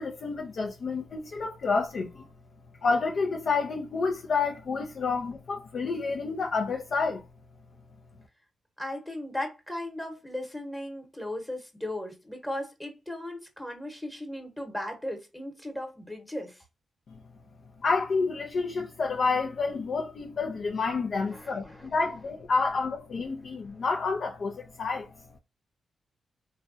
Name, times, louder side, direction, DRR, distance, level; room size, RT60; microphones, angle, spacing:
voice 1, 0.0-2.3 2.8-7.2 17.1-17.2 17.8-25.1, left 4 dB, 60° left, 0.6 m, -29 dB
voice 2, 8.8-16.6 21.3-21.9, left 1 dB, 10° left, 1.1 m, -37 dB
3.2 x 2.3 x 2.6 m
cardioid pair, 80°, 0 cm